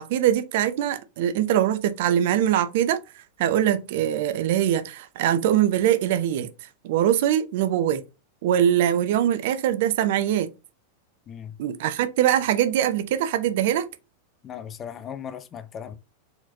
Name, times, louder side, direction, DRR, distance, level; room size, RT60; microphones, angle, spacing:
voice 1, 0.0-3.0 3.4-6.5 6.8-8.0 8.4-10.5 11.6-13.9, right 11 dB, 50° right, 0.5 m, -22 dB
voice 2, 11.3-11.6 14.4-16.0, left 8 dB, 25° left, 0.6 m, -37 dB
4.3 x 3.9 x 2.7 m
figure-of-eight pair, 90°, 0 cm